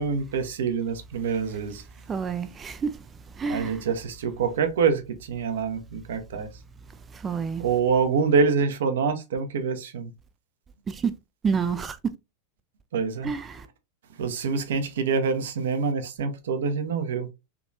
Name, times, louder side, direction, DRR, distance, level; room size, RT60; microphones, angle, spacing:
voice 1, 0.0-1.8 3.5-6.5 7.6-10.1 12.9-13.3 14.2-17.3, right 5 dB, 60° right, 0.6 m, -26 dB
voice 2, 2.1-3.0 3.4-3.8 7.1-7.6 10.9-11.1 11.4-12.0 13.2-13.7, right 5 dB, 20° right, 0.3 m, -28 dB
3.5 x 2.9 x 2.4 m
figure-of-eight pair, 90°, 0 cm